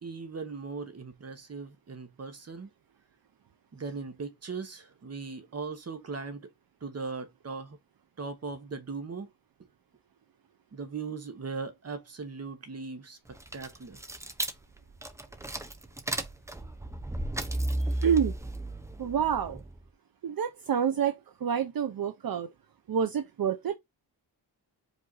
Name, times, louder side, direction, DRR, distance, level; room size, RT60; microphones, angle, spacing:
voice 1, 0.0-2.7 3.7-6.5 6.8-7.8 8.2-9.3 10.7-14.0, right 4 dB, 40° right, 1.0 m, -39 dB
sound 1, 13.3-19.8, right 1 dB, 5° right, 0.6 m, -34 dB
voice 2, 17.9-18.3 19.0-19.6 20.2-21.1 21.4-22.5 22.9-23.8, right 8 dB, 60° right, 0.7 m, -28 dB
5.1 x 2.7 x 3.9 m
wide cardioid pair, 120°, 40 cm